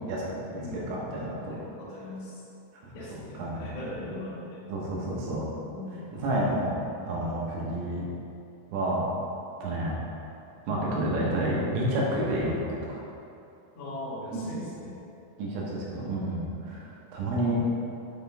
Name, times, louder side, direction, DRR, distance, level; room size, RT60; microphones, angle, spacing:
voice 1, 0.0-1.6 2.8-2.9 3.4-3.7 4.7-5.5 6.1-6.7 7.1-8.0 8.7-9.0 9.6-10.0 10.7-13.0 15.4-16.8 17.1-17.6, right 1 dB, 80° right, -4 dB, 3.7 m, -29 dB
voice 2, 0.5-1.0 1.5-2.4 2.9-4.7 5.6-6.0 13.7-15.0 16.8-16.9, left 1 dB, 75° left, -8 dB, 1.4 m, -40 dB
8.0 x 6.0 x 3.5 m, 2.7 s
omnidirectional pair, 5.8 m